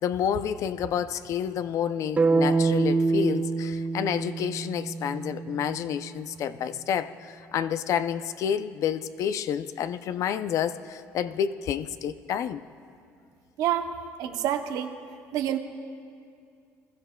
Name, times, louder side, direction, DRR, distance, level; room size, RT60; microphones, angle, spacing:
voice 1, 0.0-12.6, left 9 dB, 60° left, 0.4 m, -29 dB
sound 1, 2.2-6.2, right 3 dB, 25° right, 0.6 m, -26 dB
voice 2, 13.6-13.9 14.2-14.9 15.3-15.6, right 11 dB, 75° right, 0.8 m, -27 dB
21.0 x 13.0 x 2.2 m
cardioid pair, 100°, 6 cm